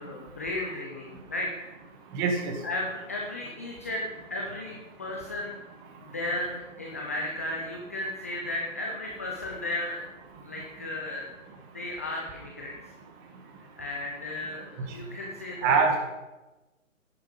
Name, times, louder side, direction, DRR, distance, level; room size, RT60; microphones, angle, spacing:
voice 1, 0.0-1.7 2.6-5.6 6.0-10.0 10.4-11.3 11.7-12.8 13.8-15.9, left 2 dB, 10° left, -1 dB, 0.5 m, -34 dB
voice 2, 2.1-2.6 9.9-10.0 15.6-15.9, right 5 dB, 15° right, 4 dB, 1.4 m, -24 dB
13.0 x 10.5 x 5.2 m, 1.1 s
figure-of-eight pair, 150°, 40 cm